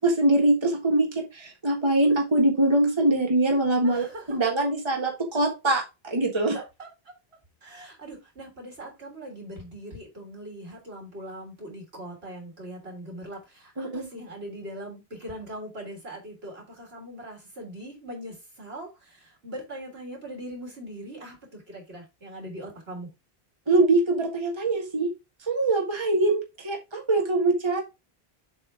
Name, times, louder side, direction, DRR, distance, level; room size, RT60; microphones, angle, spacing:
voice 1, 0.0-6.5 13.8-14.1 23.7-25.1 25.5-27.8, right 2 dB, 25° right, 1.6 m, -23 dB
voice 2, 3.8-4.4 6.5-6.9 7.6-23.1, right 1 dB, 75° right, 3.6 m, -41 dB
7.4 x 4.4 x 4.8 m
omnidirectional pair, 1.0 m